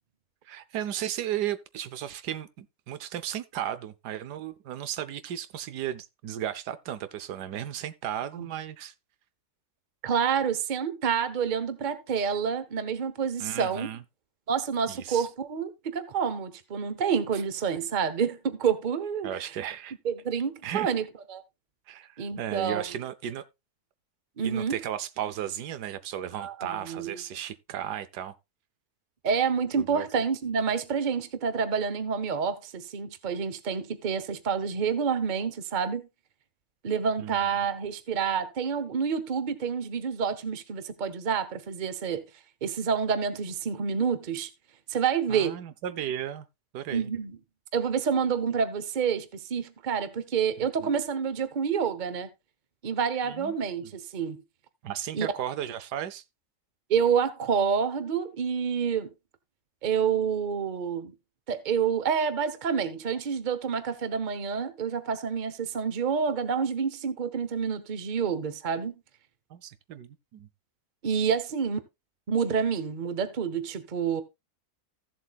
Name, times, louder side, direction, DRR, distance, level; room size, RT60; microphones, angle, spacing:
voice 1, 0.5-8.9 13.4-14.0 14.9-15.3 19.2-19.9 20.6-20.9 21.9-23.4 24.4-28.3 29.9-30.1 37.2-37.4 45.3-46.5 46.7-47.1 50.6-50.9 53.3-53.9 54.8-56.2 69.5-70.5, right 11 dB, 80° right, 1.3 m, -35 dB
voice 2, 10.0-13.9 14.5-19.3 20.0-21.4 22.2-22.8 24.4-24.8 26.4-27.2 29.2-36.0 36.8-42.2 42.6-44.5 44.9-45.6 46.9-47.4 47.7-52.3 52.8-54.4 55.1-55.3 56.9-59.1 59.8-61.1 61.5-68.9 71.0-71.8 72.3-74.2, right 6 dB, 35° right, 0.9 m, -28 dB
15.0 x 7.5 x 2.3 m
omnidirectional pair, 1.7 m